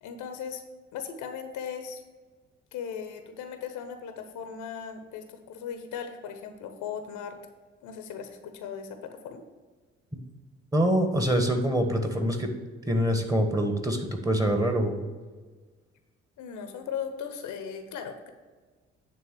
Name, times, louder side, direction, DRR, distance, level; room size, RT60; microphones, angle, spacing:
voice 1, 0.0-0.6 0.9-2.0 2.7-7.3 7.8-9.4 16.4-18.3, left 7 dB, 60° left, 7 dB, 1.0 m, -38 dB
voice 2, 10.7-12.5 12.9-15.1, equal, 10° right, 4 dB, 1.5 m, -25 dB
9.2 x 3.8 x 6.8 m, 1.4 s
figure-of-eight pair, 45°, 34 cm